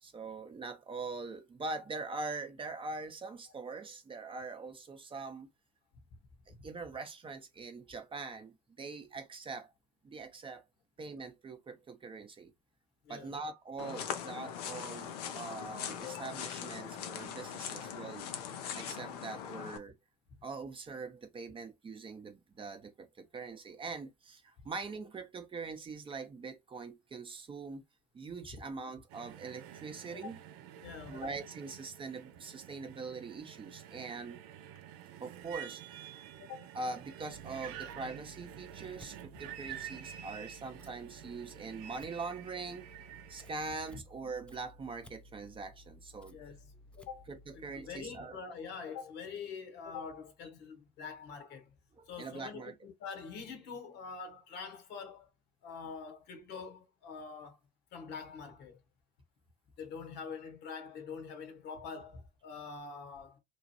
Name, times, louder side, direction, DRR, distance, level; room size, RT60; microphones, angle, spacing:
voice 1, 0.0-5.5 6.5-9.7 10.0-10.6 11.0-12.5 13.1-18.3 18.7-19.9 20.4-27.8 28.1-30.4 31.1-34.4 35.2-36.3 36.7-42.9 43.3-46.4 47.3-48.4 52.0-52.7, right 4 dB, 25° right, 0.7 m, -43 dB
voice 2, 13.0-13.4 16.0-16.4 28.5-28.6 30.2-30.3 30.8-31.3 36.4-36.7 46.3-47.3 47.5-51.7 52.1-55.3 55.6-57.6 57.9-58.8 59.8-63.4, left 5 dB, 55° left, 1.2 m, -45 dB
sound 1, 13.8-19.8, left 8 dB, 70° left, 0.6 m, -41 dB
sound 2, 29.1-44.0, right 10 dB, 60° right, 0.5 m, -49 dB
Scissors, 37.3-48.0, left 1 dB, 5° left, 0.5 m, -57 dB
3.1 x 2.3 x 2.8 m
hypercardioid pair, 70°, 21 cm